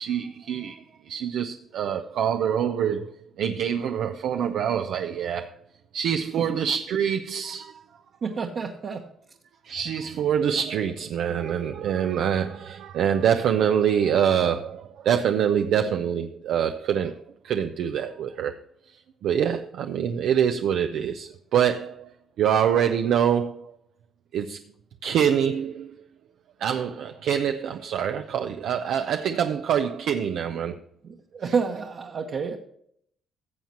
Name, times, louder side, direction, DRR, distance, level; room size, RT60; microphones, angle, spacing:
voice 1, 0.0-5.6 5.9-7.7 9.6-18.5 19.2-23.6 24.3-24.6 25.0-26.0 26.6-30.8 31.4-31.5, right 8 dB, 80° right, 0.5 m, -25 dB
voice 2, 8.2-9.0 11.3-11.4 31.0-32.6, right 5 dB, 55° right, 1.2 m, -29 dB
15.0 x 7.3 x 2.9 m
cardioid pair, 90°, 0 cm